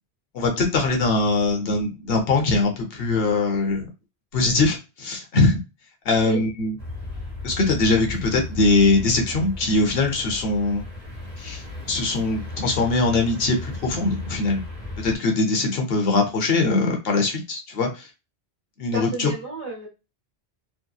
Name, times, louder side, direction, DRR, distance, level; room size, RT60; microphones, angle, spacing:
voice 1, 0.3-3.9 4.3-5.6 6.0-6.8 7.4-10.8 11.4-14.6 15.0-18.1 18.8-19.3, left 3 dB, 70° left, 3 dB, 0.9 m, -22 dB
sound 1, 6.8-15.2, left 2 dB, 5° left, 1.0 m, -35 dB
voice 2, 18.9-19.9, right 3 dB, 30° right, -3 dB, 0.9 m, -30 dB
2.7 x 2.1 x 2.3 m, 0.28 s
omnidirectional pair, 1.1 m